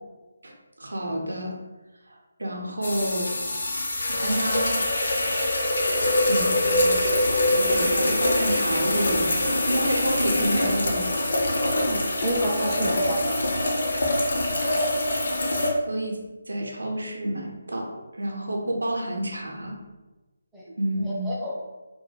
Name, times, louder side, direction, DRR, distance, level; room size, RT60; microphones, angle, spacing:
voice 1, 0.8-1.5 2.1-3.4 4.1-4.9 6.3-11.1 15.8-16.2 16.5-19.7 20.7-21.2, right 1 dB, 70° right, 0 dB, 0.5 m, -29 dB
sound 1, 2.8-15.7, left 1 dB, 55° left, 0.5 m, -24 dB
sound 2, 4.0-4.2 5.0-5.1 6.0-6.2 7.0-7.1 8.0-8.1 9.0-9.1, equal, 85° left, 0.9 m, -41 dB
voice 2, 11.8-13.2 20.5-20.7 20.9-21.5, equal, 5° right, -8 dB, 0.4 m, -29 dB
2.2 x 2.2 x 3.1 m, 1.1 s
figure-of-eight pair, 150°, 0 cm